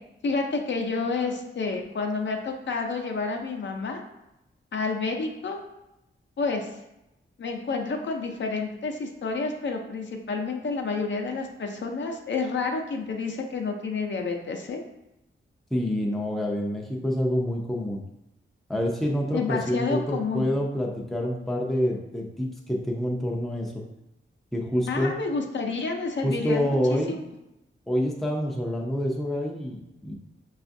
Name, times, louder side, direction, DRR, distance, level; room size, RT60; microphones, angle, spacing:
voice 1, 0.2-4.0 4.7-5.6 6.4-6.8 7.4-14.8 19.3-20.4 24.9-27.2, left 4 dB, 60° left, 3 dB, 0.5 m, -29 dB
voice 2, 15.7-18.0 18.7-23.8 24.5-25.1 26.2-27.2 27.9-30.1, equal, ahead, -1 dB, 0.4 m, -27 dB
5.8 x 2.4 x 2.6 m, 0.90 s
wide cardioid pair, 170°, 21 cm